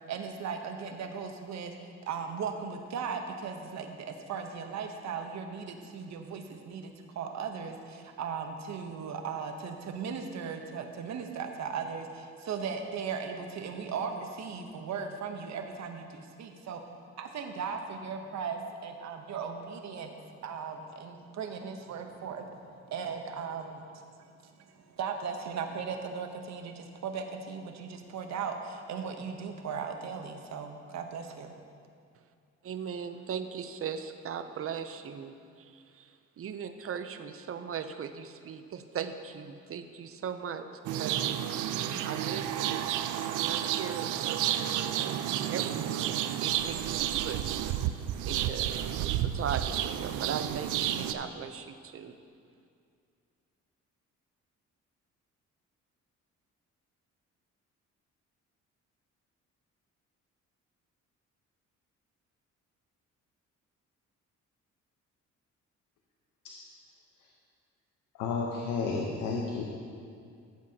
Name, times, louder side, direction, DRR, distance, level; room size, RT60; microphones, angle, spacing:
voice 1, 0.1-1.7 2.1-16.8 17.2-20.1 20.4-23.9 24.4-31.5, right 6 dB, 65° right, 5 dB, 1.0 m, -37 dB
voice 2, 32.6-40.7 41.0-41.4 42.0-42.9 43.4-45.1 45.5-47.6 48.3-52.2, right 7 dB, 50° right, 9 dB, 0.6 m, -39 dB
sound 1, 40.8-51.1, right 11 dB, 85° right, 0.5 m, -31 dB
voice 3, 68.2-69.6, left 4 dB, 90° left, 0 dB, 0.9 m, -31 dB
14.0 x 7.5 x 2.8 m, 2.3 s
cardioid pair, 90°, 30 cm